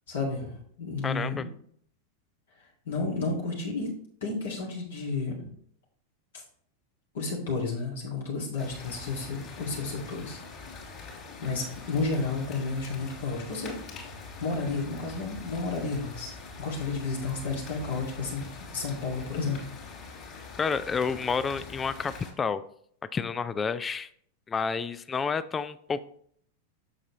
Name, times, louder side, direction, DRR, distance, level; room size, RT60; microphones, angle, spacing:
voice 1, 0.1-1.4 2.8-3.9 4.2-5.5 7.1-10.8 11.4-13.7 14.4-16.3 16.6-18.4 18.7-19.6, left 3 dB, 65° left, -3 dB, 1.8 m, -32 dB
voice 2, 1.0-1.4 20.6-22.6 23.1-24.1 24.5-26.0, left 5 dB, 20° left, 15 dB, 0.3 m, -30 dB
sound 1, 8.6-22.3, left 4 dB, 35° left, 2.5 m, -44 dB
7.4 x 6.6 x 2.9 m, 0.63 s
figure-of-eight pair, 90°, 0 cm